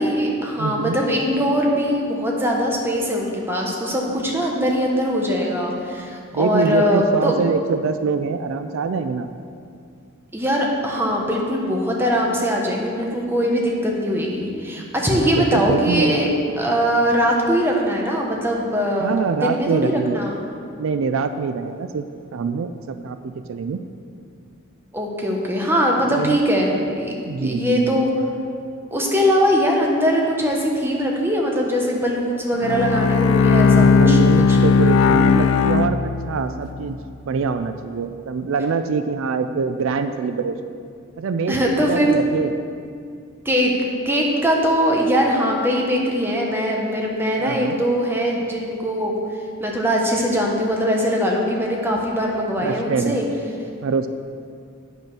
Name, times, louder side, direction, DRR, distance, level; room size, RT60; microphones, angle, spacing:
voice 1, 0.0-7.3 10.3-16.3 16.6-20.3 24.9-27.1 27.4-28.1 28.9-34.6 41.5-42.1 43.4-43.7 44.0-49.1 49.6-53.3, equal, 10° right, -1 dB, 1.0 m, -21 dB
voice 2, 0.6-1.0 6.3-9.3 15.1-16.2 19.0-20.2 20.8-22.1 22.3-23.8 26.1-26.4 27.3-28.0 33.7-37.0 37.2-40.6 41.2-42.5 47.4-47.8 52.6-53.2 53.8-54.1, right 5 dB, 70° right, 9 dB, 0.4 m, -24 dB
Bowed string instrument, 32.6-36.7, left 5 dB, 65° left, 0.3 m, -16 dB
8.7 x 5.4 x 6.1 m, 2.3 s
head